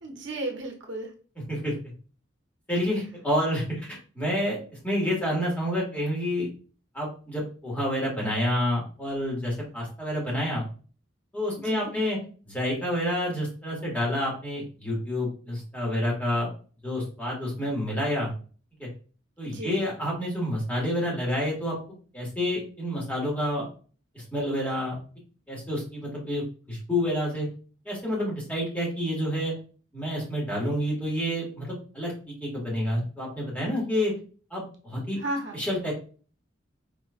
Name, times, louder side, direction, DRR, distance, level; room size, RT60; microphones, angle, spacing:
voice 1, 0.0-1.1 11.6-11.9 19.5-19.8 35.2-35.6, right 1 dB, 70° right, 1 dB, 1.1 m, -34 dB
voice 2, 2.7-4.6 4.8-6.5 6.9-10.7 11.3-12.2 12.5-16.5 16.8-18.3 18.8-18.9 19.4-21.7 22.1-23.7 24.1-25.0 25.5-27.5 27.9-29.5 29.9-34.1 34.5-35.2 35.5-35.9, equal, 10° left, -5 dB, 1.9 m, -28 dB
5.2 x 3.6 x 2.5 m, 0.39 s
head